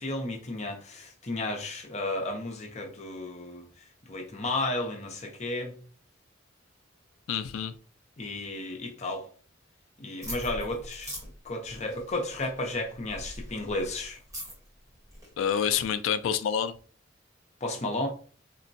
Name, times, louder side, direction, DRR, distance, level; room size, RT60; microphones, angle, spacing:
voice 1, 0.0-3.7 4.1-5.7 8.2-9.3 10.0-11.1 11.4-14.2 17.6-18.1, left 2 dB, 35° left, 0.6 m, -33 dB
voice 2, 7.3-7.7 15.4-16.7, left 8 dB, 75° left, 0.3 m, -27 dB
sound 1, 10.2-15.9, equal, 15° right, 1.1 m, -43 dB
3.7 x 2.1 x 2.6 m
head